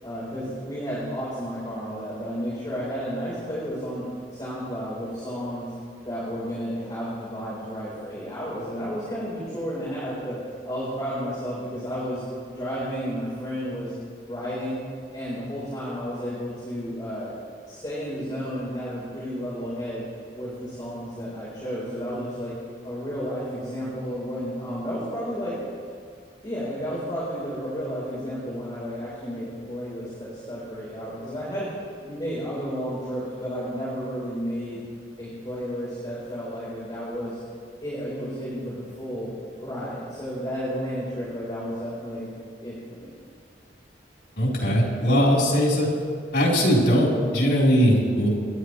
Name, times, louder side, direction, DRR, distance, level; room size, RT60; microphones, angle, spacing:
voice 1, 0.0-4.0 4.3-5.7 6.0-10.4 10.6-12.2 12.5-13.9 14.3-14.8 15.1-17.3 17.7-20.0 20.4-22.5 22.8-25.6 26.4-31.7 32.0-34.8 35.2-37.4 37.8-39.3 39.6-42.3 42.6-43.1, equal, 25° left, -9 dB, 4.1 m, -32 dB
voice 2, 44.4-45.9 46.3-48.3, equal, 90° left, -3 dB, 3.9 m, -20 dB
26.5 x 10.5 x 3.2 m, 2.1 s
head